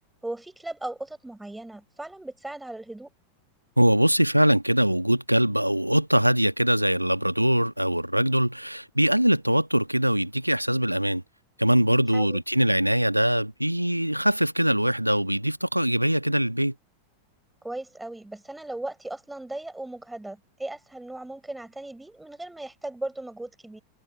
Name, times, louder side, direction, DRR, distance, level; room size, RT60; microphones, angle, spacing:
voice 1, 0.2-3.1 12.1-12.4 17.6-23.8, right 2 dB, 5° right, 5.7 m, -37 dB
voice 2, 3.8-11.2 11.6-16.7, right 1 dB, 90° right, 1.3 m, -22 dB
figure-of-eight pair, 90°, 0 cm